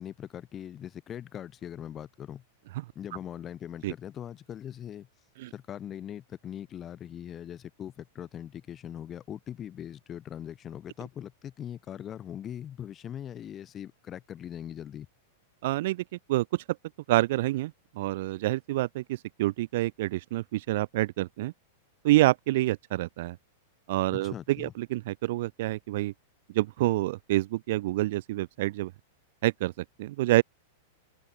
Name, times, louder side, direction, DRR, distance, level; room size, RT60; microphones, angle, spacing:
voice 1, 0.0-2.4 3.0-5.1 5.5-15.1 24.1-24.7, left 10 dB, 15° left, 5.6 m, -41 dB
voice 2, 15.6-16.0 16.3-16.6 17.1-21.5 22.0-23.4 23.9-26.1 26.5-28.9 29.4-30.4, right 17 dB, 45° right, 0.8 m, -27 dB
supercardioid pair, 175°, 0 cm